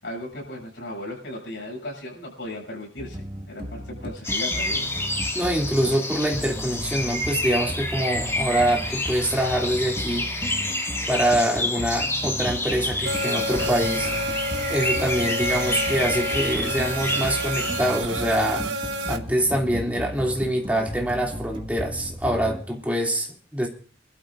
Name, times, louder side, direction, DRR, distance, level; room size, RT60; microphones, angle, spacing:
voice 1, 0.0-5.0, left 1 dB, 80° left, -2 dB, 7.8 m, -36 dB
sound 1, 3.0-22.6, equal, 30° right, 1.8 m, -35 dB
sound 2, 4.2-18.0, left 2 dB, 15° left, 2.6 m, -29 dB
voice 2, 5.3-10.2 11.1-14.1 14.7-18.7 19.1-23.7, right 1 dB, 10° right, -1 dB, 2.8 m, -25 dB
sound 3, 13.0-19.2, right 1 dB, 85° right, 1.1 m, -29 dB
27.5 x 12.5 x 2.6 m, 0.39 s
head